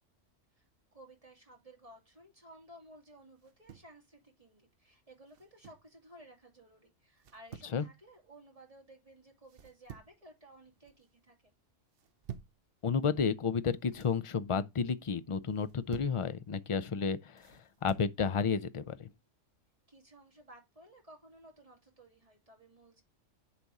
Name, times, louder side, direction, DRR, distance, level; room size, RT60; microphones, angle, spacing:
voice 1, 0.9-11.4 19.9-23.0, right 1 dB, 25° right, 2.8 m, -56 dB
sound 1, 3.4-4.0 5.3-5.9 7.2-7.8 9.5-10.2 10.6-11.1 11.9-12.6 13.6-14.2 15.5-16.2 17.4-18.1, right 9 dB, 55° right, 0.9 m, -49 dB
voice 2, 12.8-19.1, left 6 dB, 50° left, 0.4 m, -32 dB
10.0 x 4.1 x 4.8 m
omnidirectional pair, 1.3 m